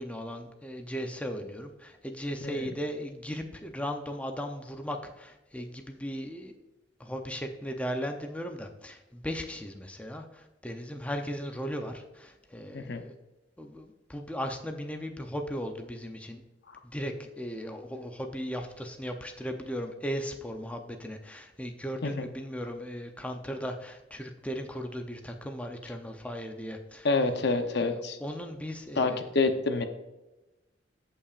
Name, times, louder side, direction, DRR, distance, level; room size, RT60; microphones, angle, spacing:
voice 1, 0.0-6.5 7.0-13.1 13.6-16.4 16.9-29.3, equal, 5° left, 4 dB, 0.6 m, -37 dB
voice 2, 27.0-28.2 29.0-29.8, left 3 dB, 65° left, 7 dB, 0.8 m, -27 dB
15.0 x 5.6 x 2.5 m, 1.0 s
head